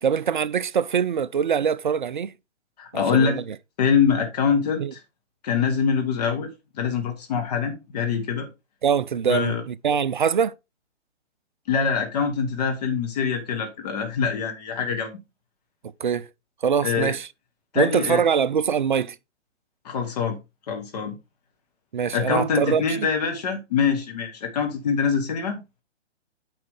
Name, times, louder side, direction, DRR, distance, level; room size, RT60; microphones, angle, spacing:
voice 1, 0.0-2.3 2.9-3.4 4.8-4.9 8.8-10.5 16.0-16.3 16.6-17.3 17.7-19.2 21.9-23.1, right 7 dB, 45° right, 0.4 m, -23 dB
voice 2, 2.8-3.4 3.8-5.0 5.4-6.5 6.8-8.5 9.3-9.6 11.7-15.2 16.8-17.1 17.7-18.2 19.8-20.4 20.7-21.1 22.1-25.8, left 6 dB, 35° left, 1.4 m, -24 dB
9.0 x 4.9 x 3.5 m
figure-of-eight pair, 130°, 36 cm